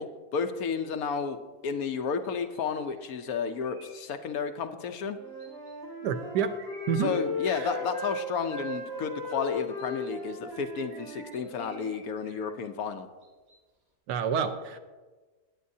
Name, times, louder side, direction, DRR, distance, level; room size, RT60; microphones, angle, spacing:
voice 1, 0.0-1.4 1.6-5.2 7.0-13.1, left 6 dB, 65° left, 7 dB, 1.1 m, -32 dB
sound 1, 2.2-4.0 5.4-5.7 6.6-7.2 7.4-8.8 9.5-10.1 10.9-12.5 13.2-13.6, right 2 dB, 60° right, 3.6 m, -54 dB
Wind instrument woodwind instrument, 5.1-11.9, left 2 dB, 40° right, 2.8 m, -37 dB
voice 2, 6.0-6.6 6.9-7.2 7.5-7.7 14.1-14.8, right 7 dB, 85° right, 9 dB, 1.4 m, -29 dB
20.0 x 8.4 x 2.7 m, 1.3 s
omnidirectional pair, 1.7 m